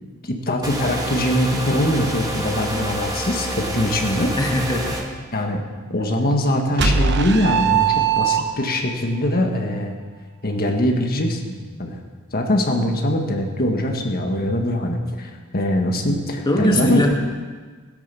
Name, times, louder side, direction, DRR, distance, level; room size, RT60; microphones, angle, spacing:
voice 1, 0.2-4.3 5.3-5.6 5.9-9.9 10.4-12.0 12.3-17.1, left 1 dB, 45° left, 3 dB, 1.7 m, -22 dB
sound 1, 0.6-5.0, right 1 dB, 20° right, 2.1 m, -27 dB
voice 2, 4.4-5.0 16.5-17.1, equal, 20° left, 1 dB, 1.9 m, -20 dB
sound 2, 6.8-8.9, right 6 dB, 55° right, 1.0 m, -19 dB
17.5 x 10.5 x 6.9 m, 1.5 s
head